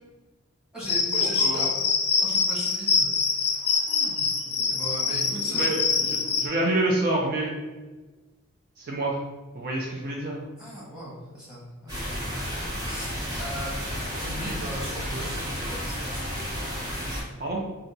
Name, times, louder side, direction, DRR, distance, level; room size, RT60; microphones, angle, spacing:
voice 1, 0.7-3.1 3.9-4.3 4.7-5.7 10.6-16.2, right 1 dB, 5° right, -8 dB, 1.1 m, -38 dB
Cricket, 0.8-6.4, left 5 dB, 30° left, 0.4 m, -24 dB
voice 2, 6.4-7.5 8.8-9.2 9.6-10.4 17.4-17.6, right 2 dB, 45° right, -2 dB, 0.4 m, -27 dB
sound 1, 11.9-17.2, equal, 20° right, 1.3 m, -32 dB
2.7 x 2.2 x 3.9 m, 1.3 s
head